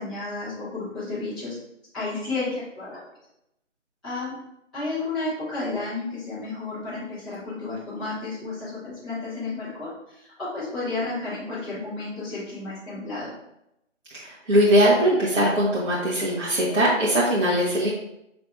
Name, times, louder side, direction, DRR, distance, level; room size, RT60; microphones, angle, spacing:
voice 1, 0.0-1.6 1.9-3.0 4.0-4.3 4.7-13.3, left 3 dB, ahead, -21 dB, 1.4 m, -32 dB
voice 2, 14.2-17.9, equal, 75° right, -7 dB, 1.3 m, -20 dB
6.2 x 3.3 x 2.6 m, 0.83 s
figure-of-eight pair, 165°, 38 cm